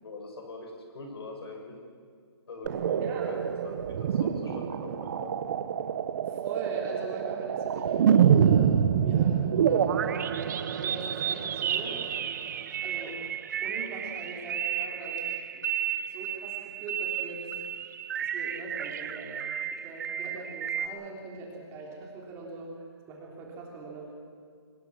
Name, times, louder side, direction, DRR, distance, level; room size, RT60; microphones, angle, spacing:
voice 1, 0.0-1.7 2.5-5.4, left 2 dB, 60° left, 2 dB, 6.7 m, -42 dB
sound 1, 2.7-20.9, right 8 dB, 40° right, 1.0 m, -28 dB
voice 2, 3.0-3.4 6.3-8.7 9.0-12.0 12.8-13.2 13.6-15.3 15.5-15.7 16.1-17.5 18.2-24.1, right 3 dB, 15° right, -2 dB, 3.5 m, -41 dB
24.5 x 21.0 x 6.2 m, 2.1 s
hypercardioid pair, 160°, 14 cm